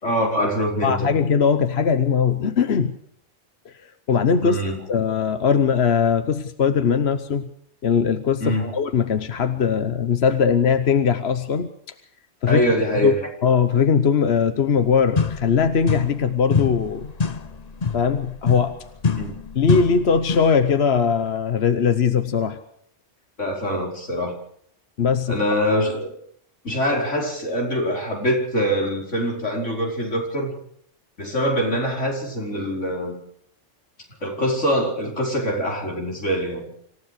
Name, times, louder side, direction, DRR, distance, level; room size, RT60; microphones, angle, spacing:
voice 1, 0.0-1.1 4.4-4.8 8.4-8.7 12.5-13.3 19.2-19.3 23.4-24.3 25.3-26.1 26.6-30.5 31.2-33.2 34.2-36.7, equal, 85° left, 0 dB, 5.4 m, -24 dB
voice 2, 0.8-3.0 3.7-3.8 4.1-4.6 4.9-7.5 7.8-11.7 12.4-12.6 13.0-17.1 17.9-18.8 19.5-22.6 25.0-25.4, left 6 dB, 60° left, 10 dB, 1.2 m, -20 dB
sound 1, 14.8-14.9 15.2-16.3 16.5-20.6, left 5 dB, 35° left, 0.9 m, -26 dB
26.5 x 15.0 x 6.7 m, 0.67 s
omnidirectional pair, 1.2 m